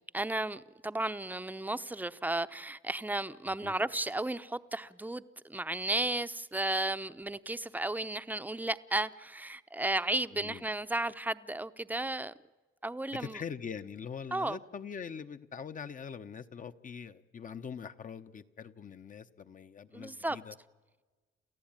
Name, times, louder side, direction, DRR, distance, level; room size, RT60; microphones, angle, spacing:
voice 1, 0.1-12.3 12.8-13.4 14.3-14.6 19.9-20.4, right 2 dB, 10° right, 0.8 m, -34 dB
voice 2, 10.3-10.6 13.1-20.5, left 7 dB, 40° left, 1.0 m, -43 dB
29.5 x 14.5 x 9.0 m
cardioid pair, 90°, 20 cm